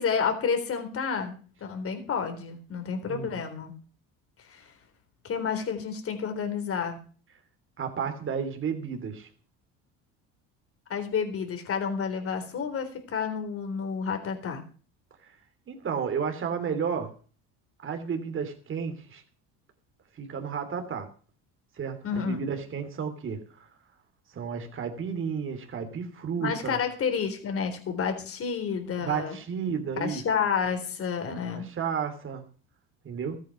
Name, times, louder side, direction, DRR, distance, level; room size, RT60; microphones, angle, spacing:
voice 1, 0.0-1.3 1.6-3.7 4.4-4.7 5.2-7.0 10.9-14.6 22.0-22.4 26.4-29.4 30.0-31.7, left 6 dB, 40° left, 6 dB, 3.9 m, -30 dB
voice 2, 3.1-3.4 7.8-9.3 15.7-17.1 17.8-19.2 20.2-21.1 21.8-23.7 24.3-26.8 29.0-30.2 31.5-32.4 33.0-33.4, right 6 dB, 35° right, 6 dB, 2.9 m, -32 dB
14.0 x 9.0 x 6.1 m, 0.40 s
supercardioid pair, 105°, 34 cm